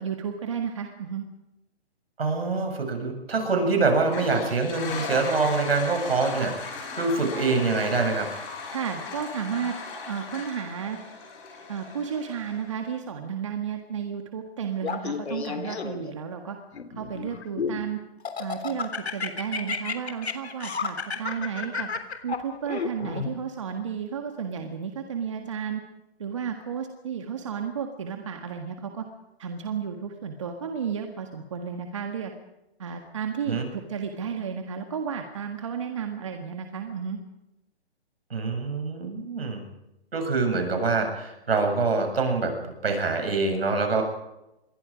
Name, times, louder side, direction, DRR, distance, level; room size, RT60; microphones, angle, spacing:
voice 1, 0.0-1.2 8.7-9.8 10.1-11.0 11.7-16.6 16.9-18.0 18.4-21.9 22.2-25.8 26.2-29.0 29.4-32.3 32.8-37.2, right 7 dB, 30° right, 4 dB, 1.7 m, -32 dB
voice 2, 2.2-8.3 33.5-33.7 38.3-39.7 40.1-44.0, right 3 dB, 65° right, 4 dB, 7.7 m, -25 dB
Toilet flush, 3.9-12.8, left 4 dB, 15° left, 6.0 m, -37 dB
Laughter, 14.8-16.1 16.7-17.8 18.3-23.3, left 5 dB, 80° left, 3.5 m, -31 dB
27.5 x 22.5 x 5.1 m, 0.92 s
hypercardioid pair, 180°, 32 cm